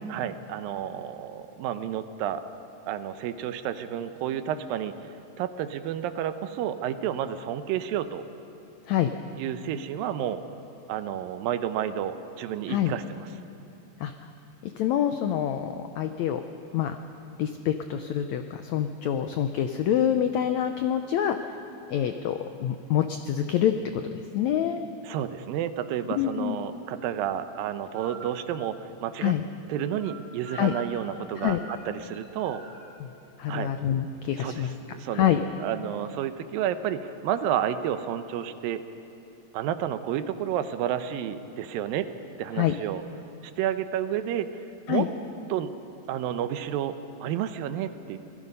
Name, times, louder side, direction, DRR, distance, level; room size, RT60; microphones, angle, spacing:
voice 1, 0.1-2.4 2.9-4.9 5.4-8.2 9.4-10.4 10.9-13.3 25.0-29.3 29.7-32.6 33.5-33.7 34.4-38.8 39.5-42.1 42.4-43.0 43.6-44.5 44.9-45.1 45.5-45.7 46.1-48.2, right 10 dB, 80° right, 10 dB, 2.5 m, -31 dB
voice 2, 14.6-16.4 16.7-17.0 17.4-21.4 21.9-24.1 24.3-24.9 26.1-26.6 29.2-29.4 30.5-30.7 31.4-31.6 33.0-33.1 33.4-34.7 35.1-35.4 42.6-42.7 44.9-45.1, left 10 dB, 85° left, 7 dB, 1.6 m, -26 dB
sound 1, 27.9-28.3 29.6-30.1 30.4-31.2 31.4-32.9, right 2 dB, 30° left, 5.3 m, -44 dB
26.0 x 18.5 x 5.4 m, 2.9 s
omnidirectional pair, 4.1 m